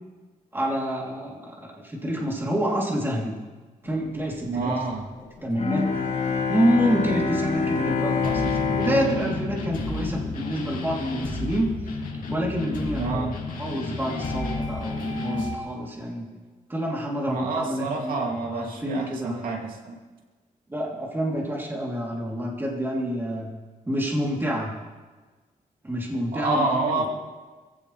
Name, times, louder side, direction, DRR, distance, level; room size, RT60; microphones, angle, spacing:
voice 1, 0.5-3.4 3.8-4.7 5.4-5.9 6.5-11.7 12.3-16.2 16.7-18.2 18.5-19.5 20.7-23.5 23.8-24.7 25.8-26.7 26.9-27.1, equal, 15° right, -3 dB, 3.3 m, -28 dB
sound 1, 3.8-15.6, left 3 dB, 75° left, 2.6 m, -33 dB
voice 2, 4.5-5.1 13.0-13.4 17.3-20.0 26.3-27.1, right 3 dB, 90° right, 0 dB, 2.8 m, -28 dB
Bowed string instrument, 5.6-10.8, left 4 dB, 55° left, 5.7 m, -27 dB
22.5 x 15.5 x 3.4 m, 1.3 s
cardioid pair, 120°, 14 cm